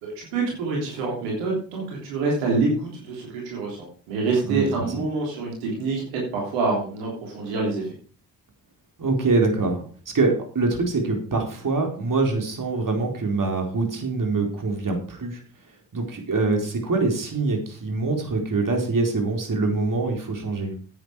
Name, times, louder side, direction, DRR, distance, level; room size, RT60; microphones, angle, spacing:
voice 1, 0.0-3.8 4.1-7.8, right 3 dB, 90° right, -2 dB, 3.4 m, -26 dB
voice 2, 4.5-4.9 9.0-9.8 10.1-15.4 15.9-20.7, right 3 dB, 45° right, 2 dB, 4.2 m, -24 dB
10.5 x 9.2 x 4.9 m, 0.41 s
hypercardioid pair, 45°, 44 cm